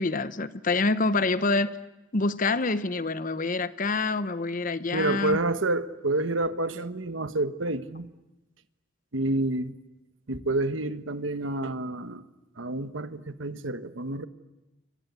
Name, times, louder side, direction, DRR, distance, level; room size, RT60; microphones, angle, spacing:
voice 1, 0.0-1.8 2.1-5.4, left 3 dB, 40° left, 0.9 m, -26 dB
voice 2, 4.9-8.1 9.1-9.7 10.3-12.2 12.6-14.3, right 2 dB, 75° right, 1.3 m, -29 dB
29.5 x 24.5 x 8.3 m
head